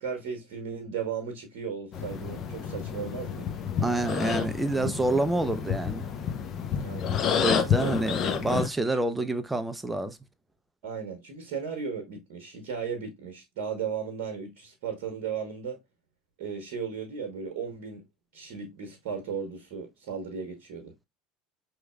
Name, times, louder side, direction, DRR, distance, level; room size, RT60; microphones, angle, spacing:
voice 1, 0.0-3.6 6.8-7.2 7.8-8.1 8.9-9.0 10.8-15.8 16.4-18.0 18.3-20.9, right 6 dB, 55° right, 1.0 m, -36 dB
sound 1, 1.9-8.7, left 7 dB, 40° left, 0.7 m, -29 dB
voice 2, 3.8-6.1 7.4-10.2, right 2 dB, 10° right, 0.5 m, -27 dB
5.6 x 3.1 x 2.2 m
figure-of-eight pair, 70°, 0 cm